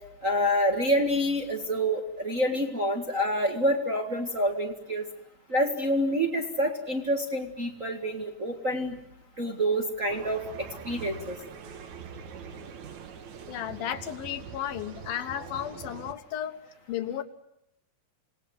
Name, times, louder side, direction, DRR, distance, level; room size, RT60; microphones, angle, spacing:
voice 1, 0.2-5.0 5.5-9.0 9.4-11.4, equal, 30° right, 1 dB, 1.6 m, -27 dB
sound 1, 10.1-16.1, right 6 dB, 60° right, 2.6 m, -43 dB
voice 2, 13.5-16.6 16.9-17.2, left 11 dB, 85° left, 8 dB, 3.1 m, -34 dB
27.0 x 19.0 x 9.5 m, 0.81 s
omnidirectional pair, 4.1 m